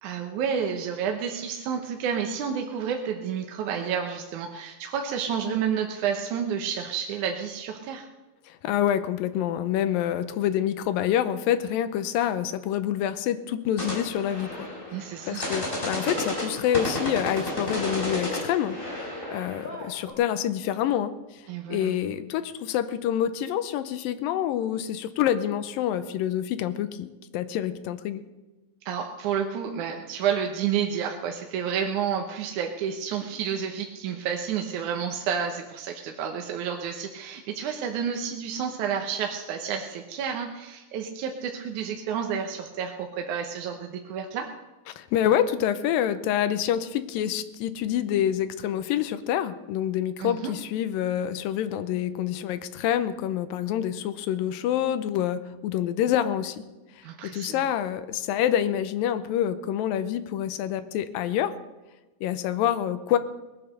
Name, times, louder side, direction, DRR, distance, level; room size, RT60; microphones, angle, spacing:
voice 1, 0.0-8.1 14.9-15.5 21.5-22.0 28.9-44.5 50.2-50.5 57.0-57.7, right 7 dB, 70° right, 3 dB, 2.2 m, -30 dB
voice 2, 8.5-14.7 15.3-21.4 21.7-28.2 44.9-56.6 57.0-61.5 62.2-63.2, left 10 dB, 85° left, 12 dB, 2.5 m, -27 dB
sound 1, 13.8-20.1, left 1 dB, 15° left, 3.0 m, -32 dB
20.0 x 9.0 x 6.6 m, 1.1 s
omnidirectional pair, 4.1 m